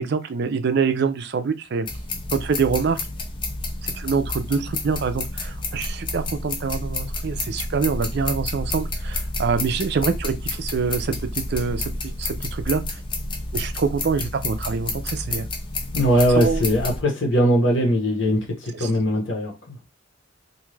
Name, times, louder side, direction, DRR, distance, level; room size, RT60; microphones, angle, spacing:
voice 1, 0.0-1.9 2.3-3.0 3.8-13.0 13.5-15.5 16.4-16.6 18.8-18.9, right 5 dB, 50° right, 0.4 m, -25 dB
sound 1, 1.9-17.0, left 2 dB, 25° left, 0.3 m, -30 dB
voice 2, 15.9-19.8, equal, 55° left, 0.9 m, -20 dB
2.6 x 2.3 x 3.1 m
head